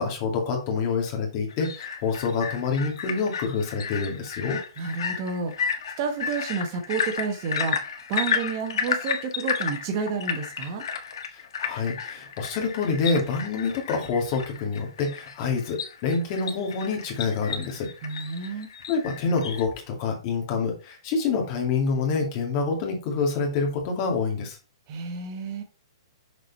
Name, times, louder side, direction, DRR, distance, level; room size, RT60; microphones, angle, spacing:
voice 1, 0.0-4.6 11.3-17.9 18.2-18.6 18.9-24.6, left 4 dB, 35° left, 2.5 m, -27 dB
sound 1, 1.5-19.6, left 6 dB, 65° left, 1.5 m, -33 dB
voice 2, 4.8-10.8 18.0-18.7 24.9-25.6, right 5 dB, 30° right, 1.3 m, -30 dB
6.7 x 4.9 x 4.2 m
hypercardioid pair, 160°, 3 cm